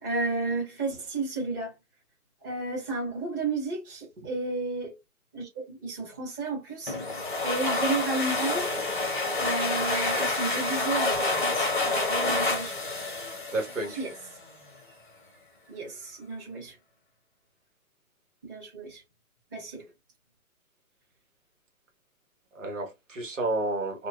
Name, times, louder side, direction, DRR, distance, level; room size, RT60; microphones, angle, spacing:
voice 1, 0.0-1.7 2.4-4.9 5.3-6.9 7.4-8.7 9.4-12.7 14.0-14.1 15.7-16.7 18.4-19.0 19.5-19.8, right 3 dB, 15° right, 1.4 m, -32 dB
sound 1, 6.9-14.3, left 2 dB, 35° left, 0.8 m, -28 dB
voice 2, 13.5-14.0 22.5-24.1, right 2 dB, 55° right, 1.5 m, -31 dB
4.5 x 2.3 x 2.4 m
hypercardioid pair, 180°, 44 cm